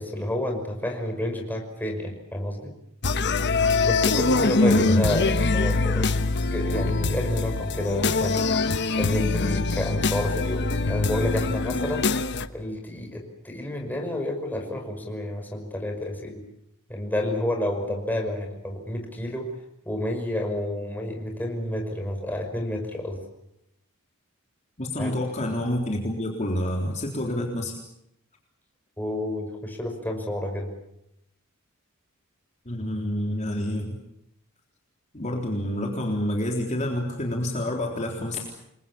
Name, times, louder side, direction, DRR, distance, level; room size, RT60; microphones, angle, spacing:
voice 1, 0.0-2.7 3.8-8.5 8.9-12.1 12.5-16.4 16.9-19.5 19.9-23.2 25.0-25.1 29.0-30.7, left 1 dB, 10° left, 2 dB, 5.8 m, -30 dB
sound 1, 3.0-12.5, left 3 dB, 55° left, 1.2 m, -23 dB
voice 2, 4.6-5.0 24.8-27.8 32.7-34.0 35.1-38.4, left 1 dB, 35° left, 1 dB, 3.7 m, -28 dB
29.0 x 22.5 x 7.2 m, 0.80 s
head